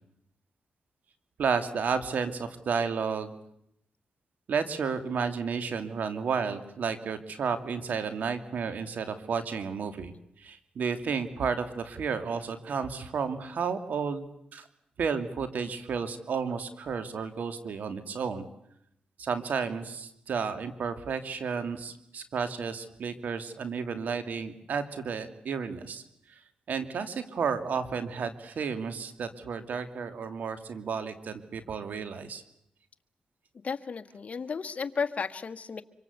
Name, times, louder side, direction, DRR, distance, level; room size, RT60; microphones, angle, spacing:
voice 1, 1.4-3.3 4.5-10.1 10.4-14.6 15.0-18.5 19.2-26.0 26.7-32.4, right 6 dB, 75° right, 9 dB, 2.6 m, -32 dB
voice 2, 33.6-35.8, left 5 dB, 55° left, 7 dB, 1.6 m, -33 dB
26.0 x 24.5 x 8.2 m, 0.75 s
cardioid pair, 60°, 3 cm